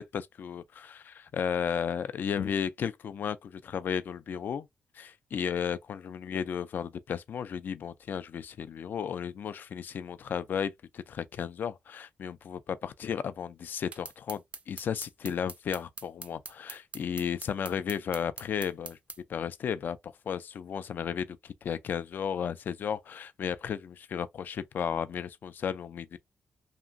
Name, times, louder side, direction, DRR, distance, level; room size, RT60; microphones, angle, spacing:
voice 1, 0.0-4.7 4.9-19.0 19.3-26.2, left 7 dB, 60° left, 0.3 m, -34 dB
sound 1, 13.9-19.2, right 4 dB, 35° right, 0.4 m, -43 dB
2.9 x 2.5 x 2.5 m
cardioid pair, 95°, 4 cm